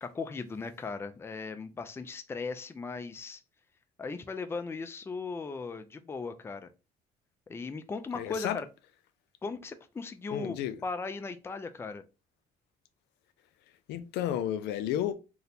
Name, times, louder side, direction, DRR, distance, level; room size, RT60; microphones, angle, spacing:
voice 1, 0.0-3.4 4.0-6.7 7.5-8.7 9.4-12.0, left 4 dB, 15° left, 0.3 m, -38 dB
voice 2, 8.1-8.6 10.3-10.7 13.9-15.1, left 11 dB, 80° left, 0.4 m, -32 dB
2.8 x 2.1 x 4.0 m
cardioid pair, 110°, 17 cm